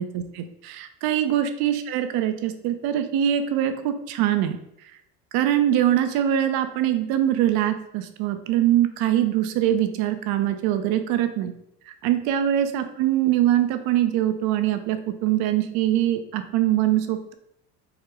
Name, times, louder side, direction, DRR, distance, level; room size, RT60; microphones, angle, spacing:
voice 1, 0.0-4.6 5.3-11.5 12.0-17.3, right 11 dB, 60° right, 8 dB, 0.6 m, -23 dB
4.9 x 2.1 x 4.7 m, 0.77 s
supercardioid pair, 115°, 43 cm